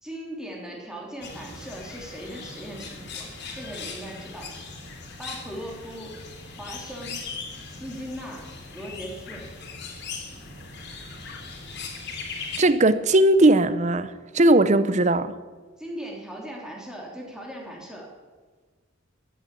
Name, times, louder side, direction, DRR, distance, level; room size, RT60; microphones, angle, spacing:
voice 1, 0.0-3.3 3.5-4.5 5.2-6.1 6.6-7.2 7.6-8.5 8.7-9.4 15.8-18.1, equal, 5° right, 3.2 m, -38 dB
sound 1, 1.2-12.6, left 4 dB, 60° left, 2.9 m, -39 dB
voice 2, 12.6-15.3, right 1 dB, 35° right, 0.7 m, -19 dB
14.0 x 9.1 x 8.5 m
head